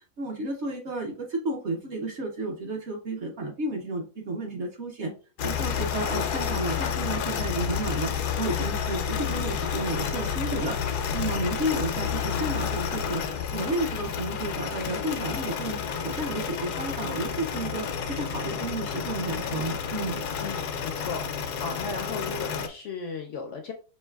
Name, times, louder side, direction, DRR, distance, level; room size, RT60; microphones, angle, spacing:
voice 1, 0.2-5.1 5.4-8.1 8.4-10.8 11.1-13.2 13.5-20.2, right 2 dB, 55° right, 2 dB, 0.9 m, -32 dB
sound 1, 5.4-22.7, left 7 dB, 85° left, 1.2 m, -30 dB
voice 2, 20.4-21.2 21.6-23.7, left 5 dB, 70° left, 4 dB, 0.7 m, -35 dB
5.5 x 2.8 x 2.2 m, 0.36 s
omnidirectional pair, 1.7 m